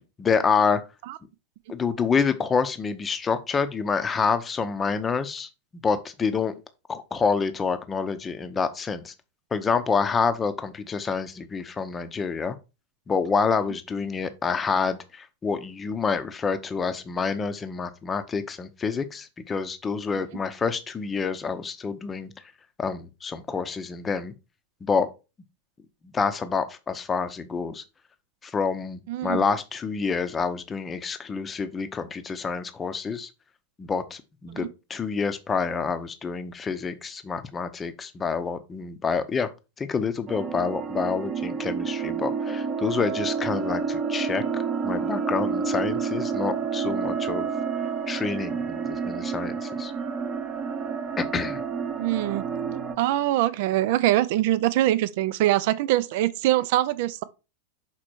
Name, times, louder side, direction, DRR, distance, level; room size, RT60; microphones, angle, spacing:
voice 1, 0.2-0.8 1.7-5.5 5.8-6.5 6.9-9.1 9.5-12.6 13.1-22.3 22.8-24.3 24.8-25.1 26.0-27.8 28.4-33.3 33.8-39.5 39.8-47.5 48.1-49.9 51.2-51.6, left 5 dB, 20° left, 0.7 m, -27 dB
voice 2, 29.1-29.4 52.0-52.4 53.0-57.2, right 14 dB, 50° right, 0.5 m, -23 dB
sound 1, 40.3-53.0, right 6 dB, 25° right, 1.0 m, -29 dB
6.1 x 4.3 x 4.4 m
figure-of-eight pair, 90°, 0 cm